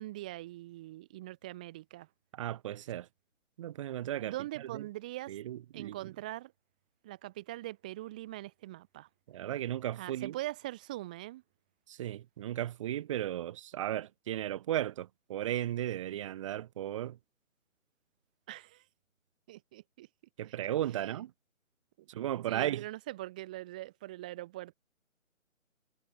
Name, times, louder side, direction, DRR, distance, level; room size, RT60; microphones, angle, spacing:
voice 1, 0.0-2.1 4.2-5.4 5.7-6.5 7.0-9.1 10.0-11.4 18.5-18.8 19.5-20.1 20.5-20.6 20.9-21.2 22.0-22.1 22.5-24.7, right 16 dB, 5° right, 0.9 m, -42 dB
voice 2, 2.3-3.1 3.6-4.3 4.6-4.8 5.3-6.0 9.3-10.4 11.9-17.2 20.4-21.3 22.1-22.9, right 12 dB, 25° right, 3.0 m, -35 dB
figure-of-eight pair, 160°, 40 cm